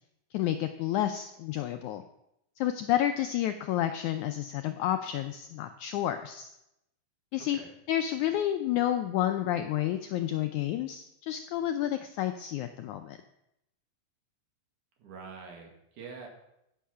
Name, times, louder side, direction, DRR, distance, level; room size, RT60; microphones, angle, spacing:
voice 1, 0.3-2.0 2.6-6.5 7.3-7.6 7.9-13.2, left 12 dB, 85° left, 8 dB, 1.7 m, -30 dB
voice 2, 7.4-7.7 15.0-16.3, right 5 dB, 60° right, 1 dB, 3.3 m, -45 dB
15.0 x 7.3 x 5.7 m, 0.84 s
omnidirectional pair, 4.1 m